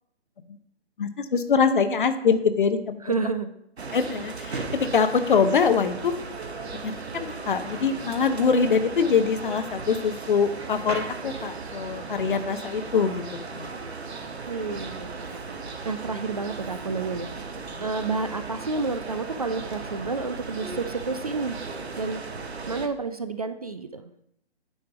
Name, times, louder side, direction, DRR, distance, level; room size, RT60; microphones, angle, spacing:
voice 1, 1.0-3.0 3.9-6.1 6.8-13.2 13.5-13.7 17.7-17.8, left 5 dB, 50° left, 10 dB, 0.8 m, -24 dB
voice 2, 3.0-3.5 14.5-15.6 15.8-21.6 22.0-22.2 22.7-24.1, right 4 dB, 35° right, 11 dB, 0.4 m, -30 dB
sound 1, 3.8-22.9, right 4 dB, 70° right, 1.2 m, -36 dB
9.6 x 3.3 x 6.9 m, 0.77 s
figure-of-eight pair, 140°, 33 cm